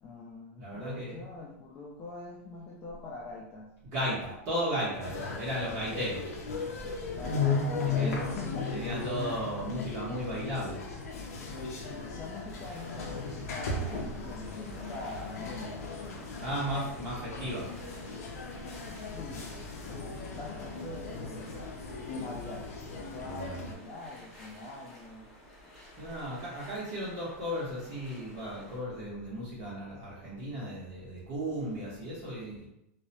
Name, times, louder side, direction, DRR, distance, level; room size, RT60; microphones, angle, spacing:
voice 1, 0.0-3.7 7.1-8.7 11.9-15.8 19.1-19.5 19.9-21.6 22.1-22.7 23.1-25.3, left 2 dB, 25° left, -3 dB, 0.4 m, -43 dB
voice 2, 0.6-1.2 3.8-6.9 7.8-8.2 8.7-10.8 16.4-17.7 23.2-23.7 26.0-32.6, equal, 40° right, -8 dB, 0.9 m, -35 dB
sound 1, 5.0-23.7, left 4 dB, 85° left, 0.5 m, -36 dB
sound 2, 12.4-28.8, left 1 dB, 5° left, 0.8 m, -53 dB
2.3 x 2.0 x 2.8 m, 0.81 s
supercardioid pair, 135°, 8 cm